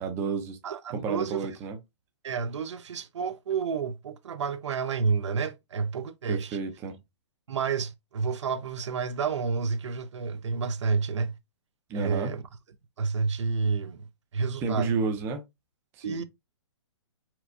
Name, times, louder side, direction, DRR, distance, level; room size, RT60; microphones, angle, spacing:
voice 1, 0.0-0.6 0.9-1.8 6.3-7.0 11.9-12.3 14.6-15.4 16.0-16.2, right 4 dB, 15° right, 0.5 m, -31 dB
voice 2, 0.6-1.5 2.2-6.6 7.5-11.3 11.9-12.4 13.0-14.1 14.3-14.9 16.0-16.2, right 5 dB, 80° right, 0.6 m, -30 dB
4.3 x 2.3 x 2.5 m
hypercardioid pair, 155°, 15 cm